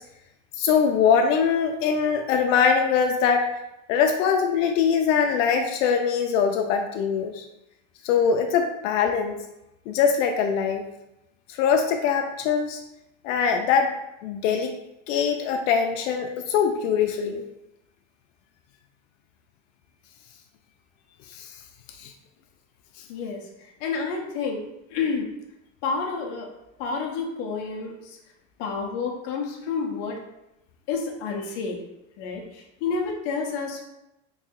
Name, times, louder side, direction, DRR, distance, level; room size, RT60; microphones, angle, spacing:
voice 1, 0.6-3.5 3.9-7.4 8.0-9.3 9.9-10.8 11.5-12.8 13.2-13.9 14.2-14.7 15.1-17.4 21.3-21.5 22.0-22.1, left 6 dB, 80° left, 4 dB, 0.5 m, -22 dB
voice 2, 23.1-23.4 23.8-24.6 24.9-25.3 25.8-26.5 26.8-28.2 28.6-30.2 30.9-31.8 32.2-33.8, left 5 dB, 45° left, 0 dB, 0.7 m, -29 dB
3.2 x 2.7 x 3.6 m, 0.90 s
cardioid pair, 175°, 38 cm